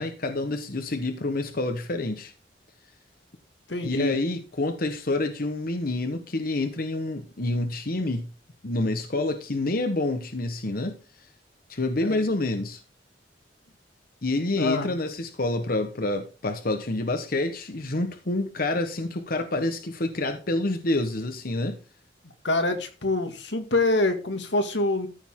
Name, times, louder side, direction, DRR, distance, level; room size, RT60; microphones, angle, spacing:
voice 1, 0.0-2.3 3.8-8.3 8.6-11.0 11.7-12.8 14.2-21.8, left 2 dB, 55° left, 6 dB, 1.1 m, -28 dB
voice 2, 3.7-4.2 12.0-12.2 14.6-14.9 22.4-25.1, left 2 dB, 90° left, 6 dB, 2.0 m, -25 dB
14.0 x 7.0 x 3.7 m, 0.34 s
head